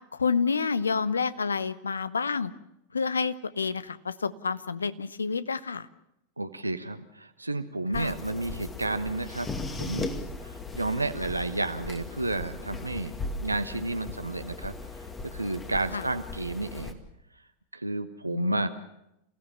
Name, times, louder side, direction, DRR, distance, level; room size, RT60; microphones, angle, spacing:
voice 1, 0.1-2.5 2.9-5.9 7.9-8.2 15.9-16.0 18.3-18.7, left 5 dB, 75° left, 16 dB, 0.9 m, -29 dB
voice 2, 6.4-10.1 10.4-13.1 13.4-17.0 17.7-18.7, right 2 dB, 85° right, 8 dB, 1.2 m, -31 dB
sound 1, 7.9-16.9, left 3 dB, 15° left, 2.2 m, -38 dB
28.0 x 16.0 x 7.3 m, 0.84 s
figure-of-eight pair, 90°, 0 cm